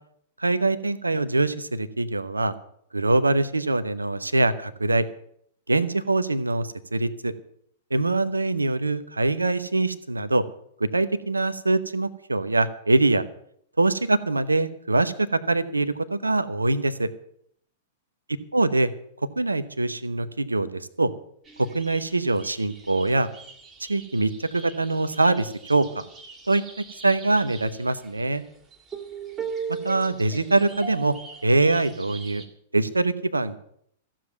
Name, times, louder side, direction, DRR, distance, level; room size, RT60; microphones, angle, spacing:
voice 1, 0.4-2.5 2.9-5.1 5.7-7.3 7.9-10.4 10.8-13.2 13.8-17.1 18.5-18.9 19.4-21.1 21.6-23.3 23.8-25.9 26.5-26.6 27.0-28.4 29.8-31.1 31.4-32.4 32.7-33.6, right 2 dB, 80° right, 13 dB, 0.9 m, -23 dB
sound 1, 21.4-32.5, right 5 dB, 20° right, 2.4 m, -40 dB
15.0 x 7.6 x 9.1 m, 0.67 s
figure-of-eight pair, 100°, 0 cm